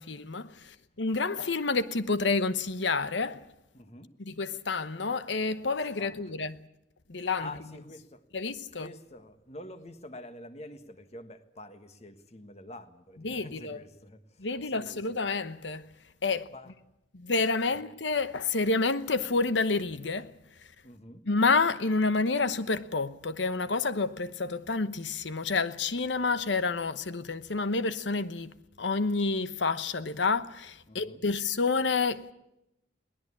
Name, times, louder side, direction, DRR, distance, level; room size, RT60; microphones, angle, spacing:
voice 1, 0.0-3.4 4.2-6.6 7.1-7.5 8.3-8.9 13.2-13.8 14.4-15.9 16.2-16.5 17.1-20.3 21.3-32.3, left 4 dB, 80° left, 1.0 m, -29 dB
voice 2, 3.7-4.2 6.0-6.3 7.2-8.2 8.7-15.0 16.3-16.7 17.7-17.9 20.8-21.3 30.9-31.2, left 1 dB, 35° left, 1.5 m, -47 dB
22.5 x 18.5 x 8.5 m
head